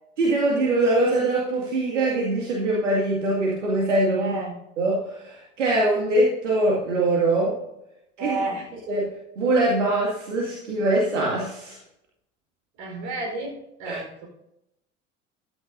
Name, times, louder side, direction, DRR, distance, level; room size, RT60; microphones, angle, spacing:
voice 1, 0.2-4.3 4.8-7.6 8.2-8.4 8.9-11.8 13.8-14.0, right 2 dB, 75° right, -4 dB, 2.4 m, -23 dB
voice 2, 4.2-4.5 8.2-8.7 12.8-14.3, right 2 dB, 55° right, 2 dB, 4.5 m, -31 dB
14.5 x 12.5 x 2.7 m, 0.84 s
figure-of-eight pair, 65°, 37 cm